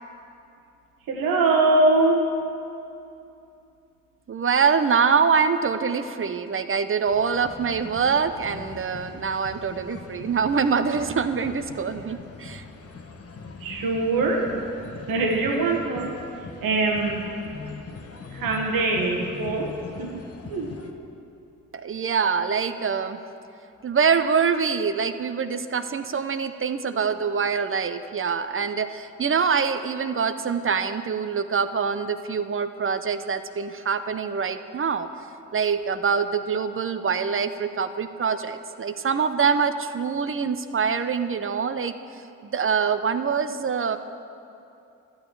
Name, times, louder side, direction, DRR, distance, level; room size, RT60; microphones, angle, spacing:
voice 1, 1.1-2.3 13.6-14.5 15.1-16.1 16.6-17.2 18.3-20.2 20.5-20.8, right 2 dB, 70° right, 1 dB, 1.5 m, -23 dB
voice 2, 4.3-12.6 21.7-23.2 23.8-35.1 35.5-44.0, right 6 dB, 35° right, 10 dB, 0.7 m, -25 dB
sound 1, 7.1-20.9, left 4 dB, 40° left, 1.2 m, -41 dB
13.0 x 8.7 x 4.7 m, 2.7 s
supercardioid pair, 50°, 35 cm